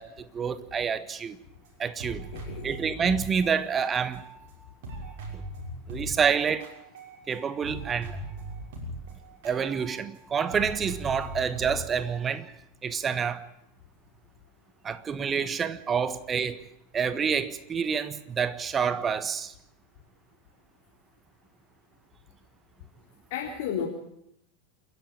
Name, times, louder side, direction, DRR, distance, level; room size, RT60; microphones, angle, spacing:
voice 1, 0.0-1.4 1.8-2.2 2.6-4.2 5.3-5.4 5.9-6.7 7.3-8.2 9.4-12.5 12.8-13.5 14.8-16.6 16.9-19.5, right 6 dB, 25° right, 13 dB, 1.4 m, -28 dB
sound 1, 1.6-1.7 2.0-4.6 4.8-10.2 10.5-12.1, right 1 dB, 55° right, 6.1 m, -40 dB
voice 2, 2.3-2.7 23.3-23.9, left 8 dB, 55° left, -1 dB, 3.7 m, -32 dB
28.0 x 11.0 x 8.8 m, 0.77 s
figure-of-eight pair, 85°, 0 cm